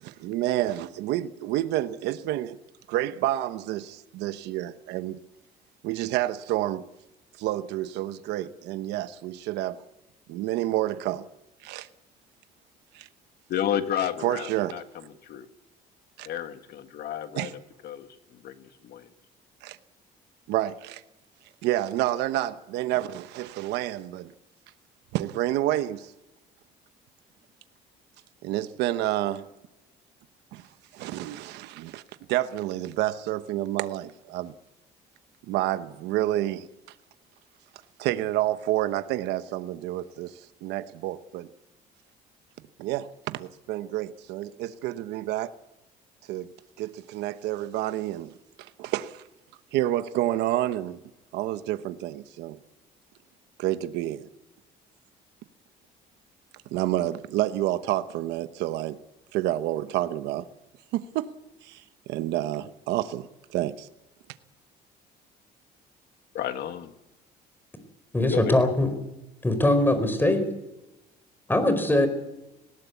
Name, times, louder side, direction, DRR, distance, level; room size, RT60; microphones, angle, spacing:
voice 1, 0.0-2.6 2.9-5.2 5.8-6.8 7.4-9.8 10.3-11.2 11.6-11.9 12.9-13.1 14.2-14.7 16.2-16.3 17.3-17.5 19.6-19.8 20.5-21.0 21.6-24.3 25.1-26.1 28.4-29.4 30.5-30.7 30.9-32.0 32.3-34.5 35.5-36.7 38.0-41.5 42.8-45.5 46.3-46.5 46.8-49.2 49.7-51.0 51.3-52.6 53.6-54.3 56.7-59.0 59.3-60.4 60.9-61.3 61.6-63.9, right 14 dB, 90° right, 1.0 m, -29 dB
voice 2, 13.5-15.5 16.2-17.5 17.8-18.1 18.4-19.1 66.3-66.9 68.3-68.5, left 10 dB, 70° left, 1.7 m, -31 dB
voice 3, 68.1-68.9 69.4-70.5 71.5-72.1, left 1 dB, 10° left, 4.5 m, -21 dB
19.5 x 18.0 x 8.3 m
cardioid pair, 110°, 17 cm